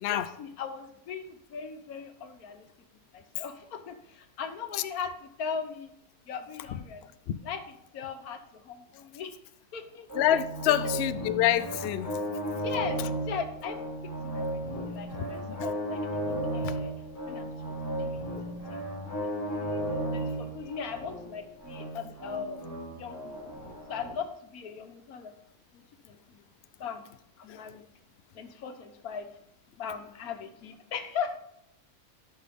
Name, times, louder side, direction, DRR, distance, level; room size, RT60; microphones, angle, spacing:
voice 1, 0.0-2.7 3.1-5.9 6.3-7.1 7.4-9.3 9.7-10.1 10.7-10.8 12.5-13.0 13.3-13.8 14.2-16.9 17.2-18.8 19.2-19.8 20.1-22.6 23.0-23.6 23.9-25.3 25.7-26.2 26.8-27.0 27.4-27.8 28.3-29.3 29.8-31.4, left 6 dB, 85° left, 7 dB, 1.4 m, -39 dB
voice 2, 10.1-12.1 14.7-15.5 18.4-18.5 27.5-27.6, left 11 dB, 70° left, 13 dB, 0.6 m, -27 dB
sound 1, 10.1-24.1, right 1 dB, 10° left, 1.5 m, -35 dB
12.0 x 5.9 x 3.5 m, 0.77 s
omnidirectional pair, 1.5 m